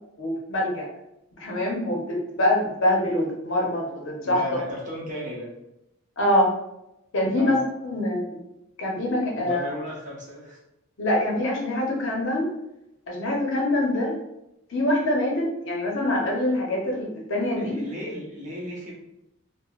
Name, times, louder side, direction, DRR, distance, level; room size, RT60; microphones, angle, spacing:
voice 1, 0.2-0.9 1.4-4.4 6.2-6.5 7.1-7.6 7.8-8.3 8.8-9.7 11.0-12.5 13.1-14.1 14.7-17.8, left 1 dB, 60° left, -2 dB, 0.7 m, -24 dB
voice 2, 4.2-5.5 7.4-7.6 9.3-10.6 17.6-18.9, left 1 dB, 35° right, -3 dB, 0.6 m, -34 dB
3.1 x 2.0 x 2.4 m, 0.87 s
head